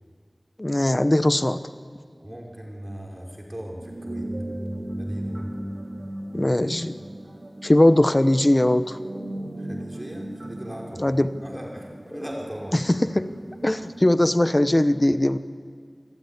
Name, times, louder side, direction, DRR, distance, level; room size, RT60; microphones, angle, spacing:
voice 1, 0.6-1.6 6.3-6.9 7.6-9.0 11.0-11.4 12.7-13.3 13.6-15.4, left 1 dB, 30° left, 11 dB, 1.0 m, -20 dB
voice 2, 2.2-4.3 5.0-5.5 9.6-11.1 11.4-12.8, equal, 25° right, -1 dB, 5.3 m, -38 dB
sound 1, 3.8-14.1, right 1 dB, 65° right, 4.3 m, -37 dB
27.0 x 15.5 x 9.9 m, 2.1 s
wide cardioid pair, 55°, 0 cm